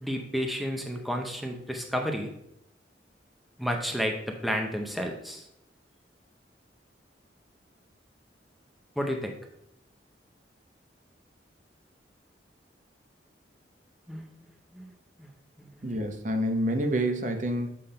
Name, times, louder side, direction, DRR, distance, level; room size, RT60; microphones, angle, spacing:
voice 1, 0.0-2.3 3.6-5.5 9.0-9.3 14.1-14.9 15.2-15.3 15.9-16.0, equal, ahead, 2 dB, 0.6 m, -31 dB
voice 2, 15.8-17.7, right 1 dB, 45° right, 5 dB, 0.7 m, -28 dB
7.7 x 3.4 x 5.5 m, 0.78 s
head